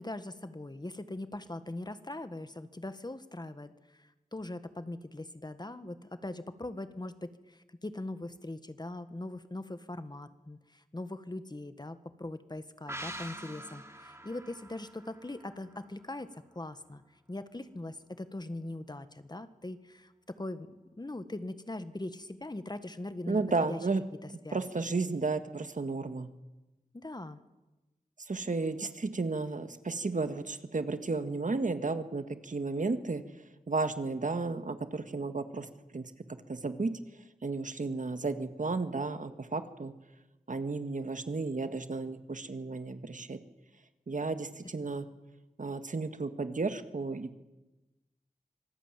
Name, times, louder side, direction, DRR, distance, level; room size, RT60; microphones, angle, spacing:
voice 1, 0.0-17.0 17.3-23.4 23.7-23.8 24.2-24.8 26.9-27.4, left 2 dB, 30° left, 11 dB, 1.6 m, -41 dB
sound 1, 12.9-16.3 16.6-16.7, right 1 dB, 20° right, 2.7 m, -45 dB
voice 2, 23.3-24.0 24.5-26.3 28.2-33.2 33.7-36.1 36.5-36.9 37.4-39.9 40.5-43.4 44.1-45.1 45.6-47.3, right 3 dB, 60° right, 9 dB, 1.7 m, -33 dB
26.0 x 19.0 x 9.1 m, 1.1 s
wide cardioid pair, 75°, 15 cm